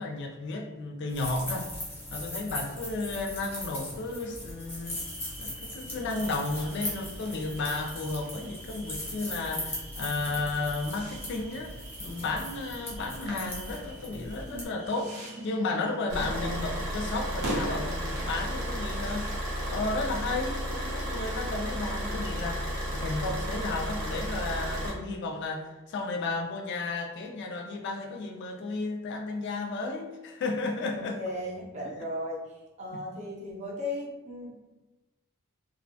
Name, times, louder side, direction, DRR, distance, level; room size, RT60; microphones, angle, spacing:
voice 1, 0.0-1.7 2.1-5.0 5.4-15.2 15.4-19.3 19.7-31.2 32.9-33.0, left 3 dB, 55° left, 2 dB, 0.3 m, -33 dB
sound 1, 1.1-14.7, left 1 dB, 10° left, 0.7 m, -39 dB
sound 2, 4.8-19.6, right 1 dB, 80° right, 0.6 m, -43 dB
voice 2, 14.5-15.8 16.1-16.8 21.7-22.2 30.9-32.4 32.8-34.6, left 1 dB, 35° right, -2 dB, 0.5 m, -38 dB
Car / Idling, 16.1-24.9, equal, 55° right, 0.9 m, -33 dB
2.5 x 2.1 x 2.6 m, 1.1 s
head